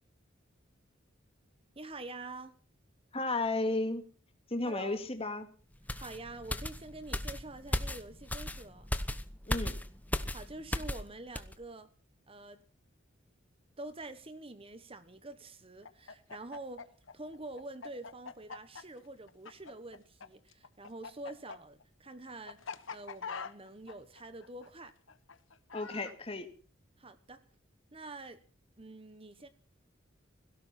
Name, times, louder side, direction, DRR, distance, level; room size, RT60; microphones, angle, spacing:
voice 1, 1.7-2.5 4.6-5.0 6.0-8.9 10.3-11.9 12.3-12.6 13.8-16.9 17.1-24.9 27.0-27.4 27.9-28.4 28.8-29.5, right 2 dB, 30° right, 1.2 m, -46 dB
voice 2, 3.1-4.1 4.5-5.5 9.5-9.8 25.7-26.5, left 2 dB, 30° left, 2.2 m, -33 dB
sound 1, 5.9-11.1 11.4-11.6, left 1 dB, 10° left, 0.9 m, -36 dB
Chicken rooster, 15.8-20.3 20.5-26.1, left 5 dB, 75° left, 1.1 m, -44 dB
17.0 x 17.0 x 4.4 m
head